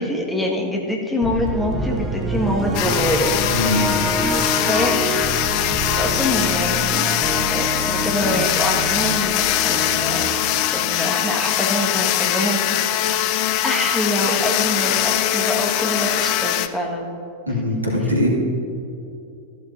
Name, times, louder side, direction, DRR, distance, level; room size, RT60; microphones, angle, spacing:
voice 1, 0.0-3.3 4.6-4.9 5.9-7.1 7.5-10.3 10.7-13.2 13.6-17.1, left 1 dB, 10° left, 0 dB, 1.7 m, -25 dB
sound 1, 1.2-11.4, right 2 dB, 25° right, 1.0 m, -27 dB
sound 2, 2.7-16.7, left 12 dB, 45° left, 0.5 m, -22 dB
voice 2, 3.5-3.9 17.5-18.3, left 1 dB, 80° right, -3 dB, 2.3 m, -21 dB
14.0 x 11.5 x 2.7 m, 2.6 s
figure-of-eight pair, 90°, 0 cm